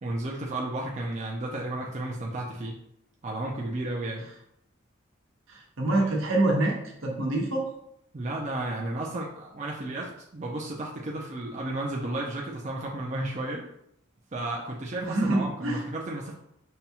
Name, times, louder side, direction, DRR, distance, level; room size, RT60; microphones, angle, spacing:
voice 1, 0.0-2.8 3.2-4.3 8.1-13.6 14.3-16.3, right 2 dB, 35° right, -2 dB, 0.5 m, -33 dB
voice 2, 5.5-6.8 7.0-7.7 15.0-15.8, right 2 dB, 75° right, -1 dB, 1.0 m, -25 dB
5.4 x 2.3 x 2.8 m, 0.75 s
head